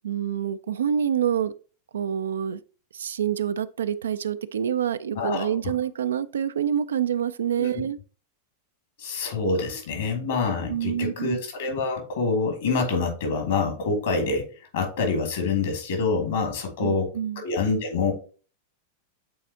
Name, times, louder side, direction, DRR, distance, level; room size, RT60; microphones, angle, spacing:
voice 1, 0.0-1.5 1.9-2.6 2.9-8.0 10.7-11.4 16.8-17.4, right 9 dB, 65° right, 0.4 m, -27 dB
voice 2, 5.2-5.5 7.6-7.8 9.0-14.5 14.7-17.1 17.4-18.1, left 4 dB, 60° left, 2.5 m, -26 dB
8.4 x 4.1 x 2.8 m
figure-of-eight pair, 90°, 0 cm